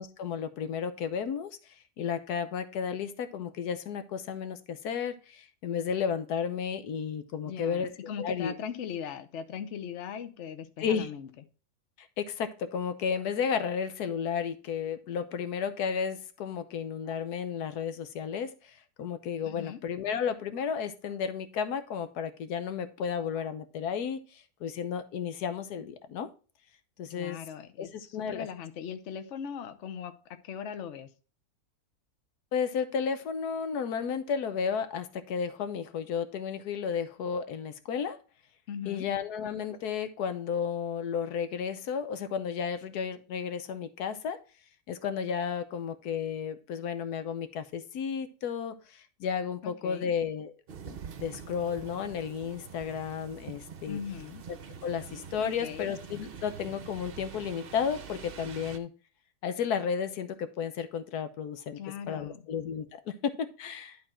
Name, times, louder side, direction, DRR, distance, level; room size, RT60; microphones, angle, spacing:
voice 1, 0.0-1.6 2.0-7.9 8.2-8.5 10.8-11.1 12.0-24.2 24.6-26.3 27.0-27.4 27.8-28.5 32.5-38.2 38.9-44.4 44.9-50.5 50.9-54.0 54.8-58.9 59.4-61.8 62.1-64.0, left 7 dB, 90° left, 10 dB, 1.4 m, -33 dB
voice 2, 7.4-11.3 19.4-19.8 27.1-30.1 30.4-31.1 38.7-39.1 49.6-50.1 53.9-54.4 55.4-55.9 61.8-62.4, left 8 dB, 55° left, 9 dB, 1.0 m, -39 dB
sound 1, 50.7-58.8, right 6 dB, 50° right, 0.8 m, -45 dB
11.5 x 3.9 x 4.3 m, 0.35 s
omnidirectional pair, 1.6 m